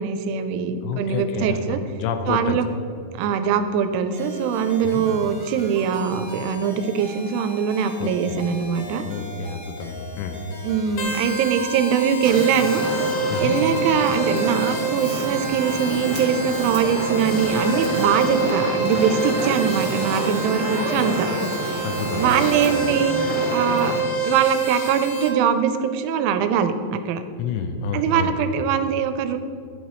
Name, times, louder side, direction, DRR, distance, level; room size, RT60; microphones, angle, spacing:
voice 1, 0.0-1.8 2.3-2.7 3.1-9.0 10.6-12.8 13.4-21.3 22.2-23.1 23.5-24.0 24.2-27.2 27.9-29.4, right 7 dB, 90° right, 9 dB, 3.1 m, -22 dB
voice 2, 0.8-2.6 4.8-5.0 8.0-8.4 9.0-10.4 13.3-13.6 21.8-22.4 27.4-28.3, left 5 dB, 85° left, 7 dB, 3.1 m, -29 dB
sound 1, 4.1-15.9, left 2 dB, 25° left, 1.6 m, -39 dB
sound 2, 11.0-25.3, right 3 dB, 70° left, 2.1 m, -27 dB
Fire, 12.2-24.0, equal, 35° right, 0.4 m, -29 dB
13.0 x 8.4 x 3.1 m, 2.5 s
omnidirectional pair, 5.4 m